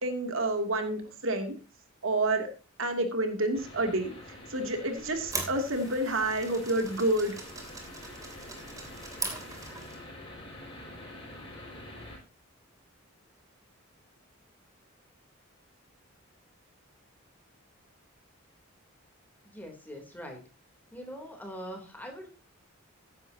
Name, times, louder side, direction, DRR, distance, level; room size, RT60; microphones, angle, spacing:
voice 1, 0.0-1.6 2.0-2.5 2.8-7.4, right 1 dB, 70° right, 5 dB, 2.6 m, -29 dB
sound 1, 3.5-12.2, left 1 dB, 25° left, 5.6 m, -46 dB
sound 2, 5.0-10.1, right 3 dB, 15° right, 2.9 m, -40 dB
voice 2, 19.4-20.4 20.9-22.3, equal, 10° left, 2 dB, 3.1 m, -42 dB
16.0 x 10.5 x 2.8 m, 0.34 s
head